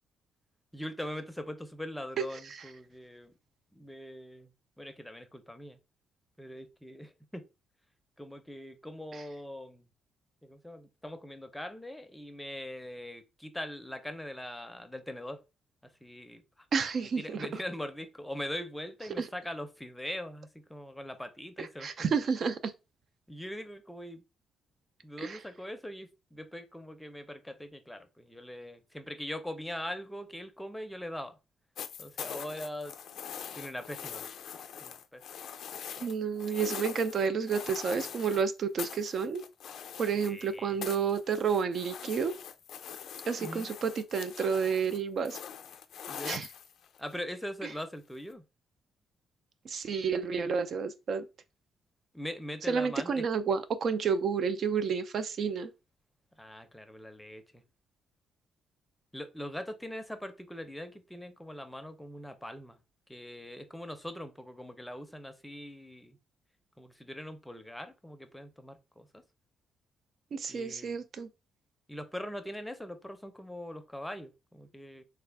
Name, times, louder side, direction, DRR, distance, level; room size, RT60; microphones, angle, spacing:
voice 1, 0.7-3.3 3.7-4.5 4.8-5.8 6.4-7.4 8.2-9.8 10.4-15.4 16.0-16.4 17.0-22.1 23.3-24.2 25.0-31.4 32.0-32.9 33.5-34.3 34.8-35.2 40.2-40.8 43.4-43.7 46.1-46.5 47.0-48.4 52.1-53.2 56.4-57.4 59.1-62.8 63.1-66.2 66.8-69.2 70.5-71.0 71.9-75.0, left 1 dB, 5° left, 0.6 m, -42 dB
voice 2, 16.7-17.5 19.2-19.3 21.6-22.7 25.2-25.4 36.0-39.4 40.0-42.3 43.3-45.4 46.3-46.5 49.7-51.2 52.7-55.7 70.3-71.3, right 6 dB, 55° right, 0.4 m, -30 dB
sound 1, 31.8-38.4 38.8-40.5 40.8-47.1 48.3-48.4, left 8 dB, 70° left, 0.4 m, -43 dB
3.3 x 2.3 x 3.4 m
cardioid pair, 90°, 0 cm